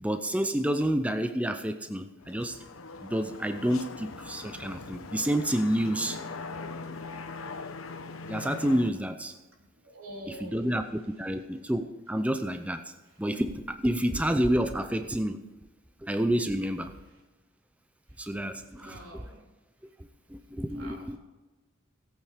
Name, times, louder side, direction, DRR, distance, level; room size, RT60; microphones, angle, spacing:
voice 1, 0.0-2.6 3.0-6.2 8.2-9.3 10.3-12.9 13.2-15.4 16.0-16.9 18.2-19.2 20.3-21.2, right 1 dB, 5° right, 8 dB, 0.5 m, -29 dB
sound 1, 2.2-8.9, left 3 dB, 85° left, 0.9 m, -41 dB
voice 2, 9.8-10.7 18.2-19.4 20.7-21.2, equal, 85° right, 0 dB, 3.4 m, -46 dB
17.0 x 8.7 x 5.0 m, 1.2 s
head